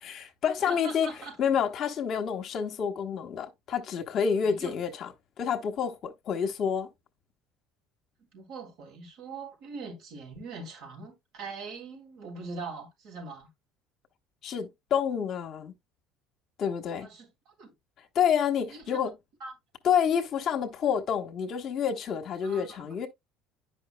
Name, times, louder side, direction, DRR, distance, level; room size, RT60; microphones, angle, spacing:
voice 1, 0.0-1.1 1.4-5.1 5.4-6.9 14.4-15.7 16.6-17.1 18.1-19.1 19.8-23.1, left 7 dB, 55° left, 1.1 m, -28 dB
voice 2, 0.7-1.4 4.4-4.8 8.3-13.5 17.0-17.7 18.7-19.0 19.4-19.5 22.4-23.0, right 4 dB, 70° right, 4.1 m, -42 dB
9.7 x 5.6 x 2.2 m
hypercardioid pair, 75°, 0 cm